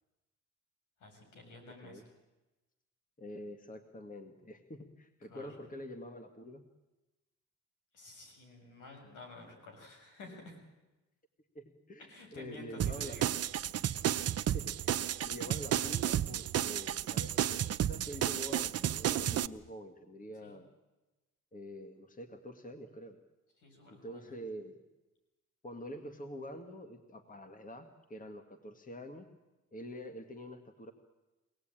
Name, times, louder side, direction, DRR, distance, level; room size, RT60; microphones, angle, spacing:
voice 1, 1.0-2.1 5.3-5.5 7.9-10.6 12.1-13.3 20.4-20.6 23.6-24.3, left 2 dB, 80° left, 3 dB, 7.3 m, -51 dB
voice 2, 3.2-6.6 11.5-13.2 14.4-20.7 21.5-23.2 24.0-24.8 25.6-29.3 29.7-30.9, equal, 25° left, 7 dB, 1.9 m, -46 dB
sound 1, 12.8-19.5, right 11 dB, 55° right, 0.7 m, -32 dB
24.0 x 18.0 x 9.1 m, 1.1 s
cardioid pair, 90°, 30 cm